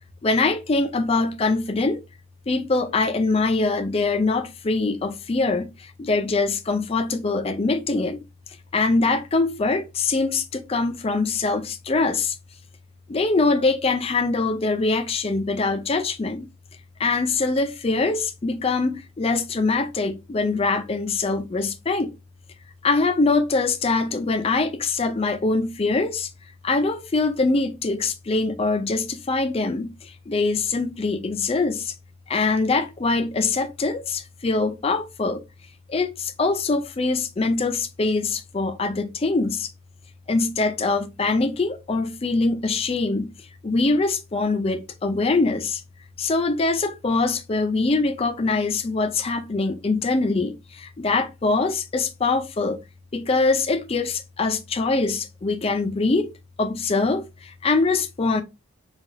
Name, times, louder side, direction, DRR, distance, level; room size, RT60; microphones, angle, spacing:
voice 1, 0.2-2.0 2.5-8.2 8.7-12.4 13.1-16.5 17.0-22.1 22.8-26.3 26.6-31.9 32.3-35.4 35.9-39.7 40.3-43.3 43.6-45.8 46.2-52.8 53.1-56.3 56.6-58.4, left 3 dB, 30° left, 0.4 m, -23 dB
4.7 x 2.4 x 2.6 m
head